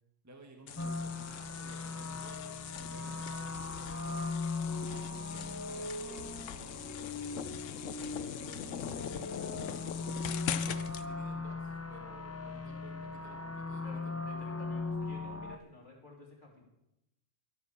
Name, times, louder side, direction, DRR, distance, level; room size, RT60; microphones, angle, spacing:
voice 1, 0.2-4.2 4.9-7.4 7.9-14.3, right 2 dB, 15° right, 3 dB, 1.4 m, -55 dB
sound 1, 0.7-11.1, left 10 dB, 85° left, 1.0 m, -42 dB
sound 2, 0.8-15.6, left 3 dB, 15° left, 0.5 m, -39 dB
voice 2, 13.7-16.6, left 3 dB, 40° left, -2 dB, 3.2 m, -52 dB
12.0 x 9.2 x 7.1 m, 0.88 s
omnidirectional pair, 1.3 m